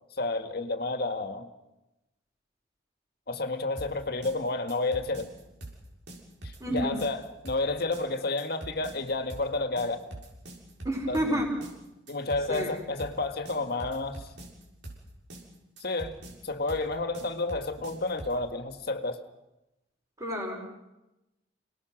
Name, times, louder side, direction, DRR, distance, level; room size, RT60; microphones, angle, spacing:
voice 1, 0.2-1.5 3.3-5.3 6.4-10.0 11.1-11.4 12.1-14.3 15.8-16.2 16.4-19.2, left 2 dB, 60° left, 7 dB, 1.8 m, -31 dB
sound 1, 3.8-18.5, right 1 dB, 90° right, 7.0 m, -44 dB
voice 2, 6.6-7.0 10.8-11.6 12.5-12.8 20.2-20.7, equal, 20° right, -6 dB, 5.1 m, -30 dB
29.0 x 19.5 x 6.3 m, 0.98 s
head